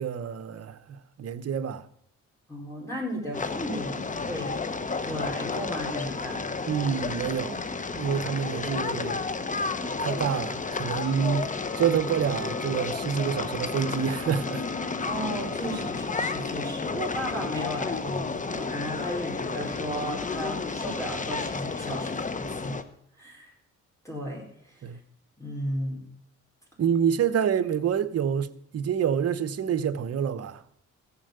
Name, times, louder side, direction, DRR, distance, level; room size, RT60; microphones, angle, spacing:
voice 1, 0.0-1.9 6.7-7.6 7.9-9.2 10.0-14.6 24.8-25.0 26.8-30.6, right 8 dB, 55° right, 1.0 m, -27 dB
voice 2, 2.5-4.6 5.0-6.4 15.0-22.8 23.2-23.5 24.0-24.8 25.4-26.0, equal, 10° left, 4.9 m, -35 dB
sound 1, 3.3-22.8, left 4 dB, 25° left, 1.0 m, -32 dB
Wind instrument woodwind instrument, 11.0-16.4, left 7 dB, 65° left, 2.6 m, -49 dB
15.5 x 7.3 x 6.8 m
cardioid pair, 90°, 30 cm